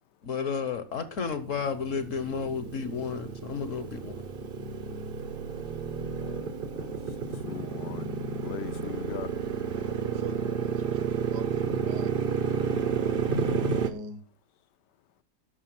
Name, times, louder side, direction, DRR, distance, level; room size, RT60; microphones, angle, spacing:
voice 1, 0.2-4.1, left 6 dB, 55° left, 1.1 m, -32 dB
Motorcycle, 1.2-13.9, right 6 dB, 40° right, 0.8 m, -31 dB
voice 2, 6.2-6.9 7.4-8.1 8.4-9.4, left 12 dB, 75° left, 1.2 m, -41 dB
voice 3, 9.6-12.4 13.4-14.2, right 4 dB, 65° right, 1.7 m, -43 dB
11.5 x 6.5 x 5.9 m
omnidirectional pair, 2.0 m